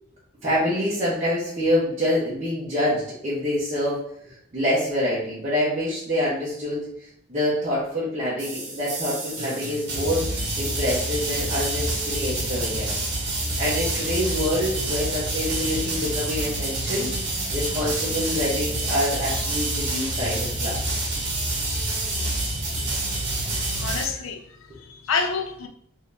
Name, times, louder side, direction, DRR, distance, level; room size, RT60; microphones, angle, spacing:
voice 1, 0.4-4.0 4.5-6.9 7.3-12.9 13.6-17.1 17.5-20.8, left 1 dB, 35° right, 0.9 m, -26 dB
sound 1, 8.4-24.0, right 2 dB, 55° right, 1.1 m, -27 dB
voice 2, 23.7-25.7, left 5 dB, 85° left, 0.5 m, -28 dB
3.6 x 2.7 x 3.3 m
head